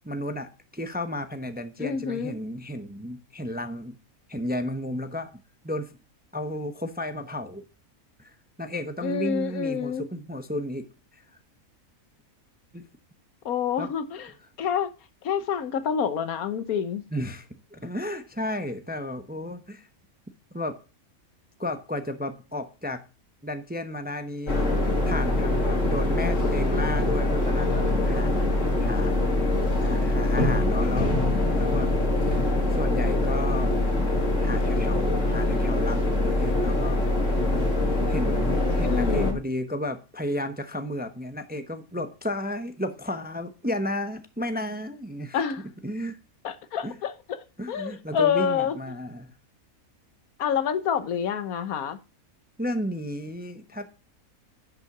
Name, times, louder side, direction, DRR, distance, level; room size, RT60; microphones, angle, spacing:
voice 1, 0.0-4.0 4.3-5.4 5.6-6.0 6.3-7.6 8.2-8.3 8.6-10.9 11.1-11.2 12.7-12.9 13.8-13.9 17.1-19.9 20.5-20.8 21.6-23.0 23.4-28.4 28.8-29.1 29.8-31.3 31.5-31.9 32.7-33.7 34.4-37.0 38.1-45.4 45.8-46.2 46.8-46.9 47.6-49.3 52.6-53.9, left 1 dB, 10° right, 0.7 m, -33 dB
voice 2, 1.8-2.3 9.0-10.0 13.4-14.3 14.6-14.9 15.2-17.0 38.8-39.4 45.3-45.6 46.4-47.1 47.7-48.8 50.4-52.0, left 7 dB, 80° left, 1.4 m, -27 dB
sound 1, 24.5-39.3, left 2 dB, 60° left, 2.6 m, -24 dB
10.5 x 5.6 x 5.9 m
omnidirectional pair, 1.5 m